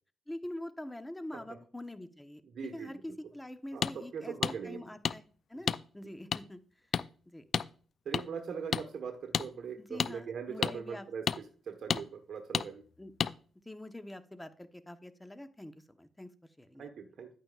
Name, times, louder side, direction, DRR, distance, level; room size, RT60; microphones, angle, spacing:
voice 1, 0.3-2.4 2.7-6.6 7.3-7.4 9.8-11.1 13.0-13.1 13.6-16.3 16.6-16.9, left 1 dB, 10° left, 9 dB, 1.1 m, -45 dB
voice 2, 2.5-3.0 3.7-3.9 4.1-4.9 8.0-12.8 16.8-17.3, right 6 dB, 65° right, 4 dB, 1.3 m, -41 dB
sound 1, 3.8-3.9 4.4-4.5 5.0-5.2 5.7-5.8 6.3-6.4 6.9-7.1 7.5-7.7 8.1-8.2 8.7-8.8 9.3-9.5 10.0-10.1 10.6-10.7 11.3-11.4 11.9-12.0 12.5-12.7 13.2-13.3, left 7 dB, 60° left, 0.4 m, -30 dB
10.5 x 8.9 x 2.5 m, 0.41 s
cardioid pair, 70°, 0 cm